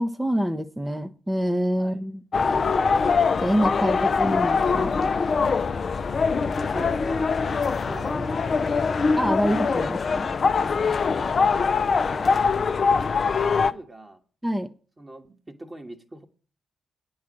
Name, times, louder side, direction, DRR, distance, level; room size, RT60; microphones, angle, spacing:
voice 1, 0.0-2.2 3.4-4.9 9.2-10.3 14.4-14.7, equal, 10° right, 0.8 m, -26 dB
sound 1, 2.3-13.7, left 5 dB, 50° left, 0.6 m, -23 dB
voice 2, 3.6-4.0 6.2-7.5 7.9-9.9 10.8-14.2 15.0-16.3, right 1 dB, 30° right, 1.6 m, -42 dB
9.4 x 4.7 x 7.4 m
hypercardioid pair, 45°, 0 cm